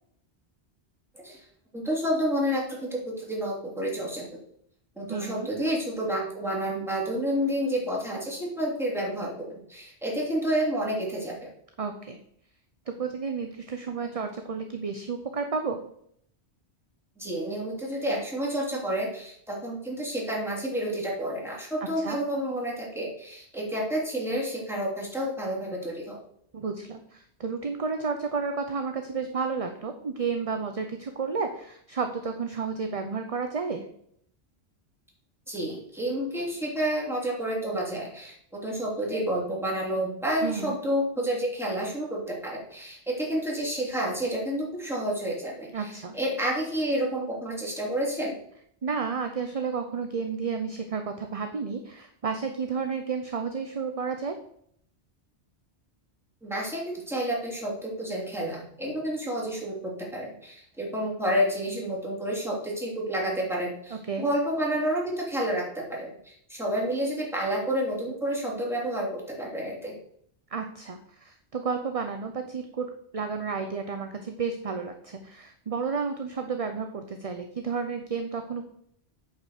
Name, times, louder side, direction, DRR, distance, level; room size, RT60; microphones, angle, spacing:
voice 1, 1.7-4.3 5.0-11.5 17.2-26.2 35.5-38.3 38.6-48.4 56.4-70.0, equal, ahead, -4 dB, 3.1 m, -30 dB
voice 2, 5.1-5.5 11.8-12.2 12.9-15.8 22.0-22.2 26.5-33.9 40.4-40.8 45.7-46.1 48.8-54.4 63.9-64.3 70.5-78.7, right 5 dB, 35° right, 6 dB, 0.7 m, -32 dB
8.9 x 5.3 x 6.7 m, 0.68 s
omnidirectional pair, 1.1 m